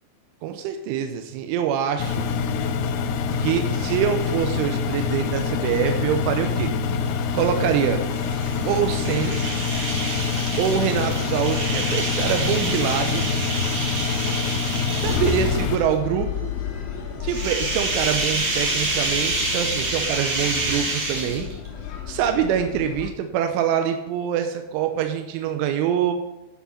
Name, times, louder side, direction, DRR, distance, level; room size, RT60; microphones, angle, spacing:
voice 1, 0.4-2.3 3.4-6.7 7.3-8.0 8.7-9.4 10.6-13.2 15.0-16.5 17.2-21.5 22.1-26.1, right 9 dB, 85° right, 6 dB, 3.1 m, -25 dB
Engine, 2.0-15.8, left 5 dB, 85° left, 3.3 m, -25 dB
sound 1, 8.0-15.8 17.2-21.7, right 2 dB, 50° right, 1.8 m, -28 dB
sound 2, 15.0-23.1, left 8 dB, 65° left, 2.4 m, -32 dB
9.8 x 6.1 x 5.6 m, 0.97 s
omnidirectional pair, 5.6 m